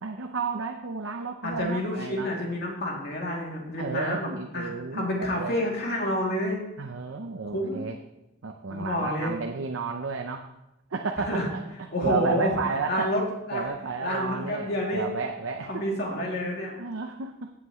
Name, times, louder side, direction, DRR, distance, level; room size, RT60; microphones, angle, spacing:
voice 1, 0.0-2.3 3.8-5.5 6.8-8.0 8.4-10.5 10.9-11.4 11.8-13.1 13.5-15.8 16.8-17.5, right 4 dB, 85° right, 4 dB, 0.7 m, -32 dB
voice 2, 1.4-6.6 7.5-7.8 8.7-9.3 11.3-11.5 11.9-12.5 12.9-13.2 13.5-13.6 14.0-15.1 15.7-16.8, left 1 dB, 55° left, -2 dB, 2.6 m, -29 dB
16.0 x 7.7 x 3.1 m, 0.92 s
head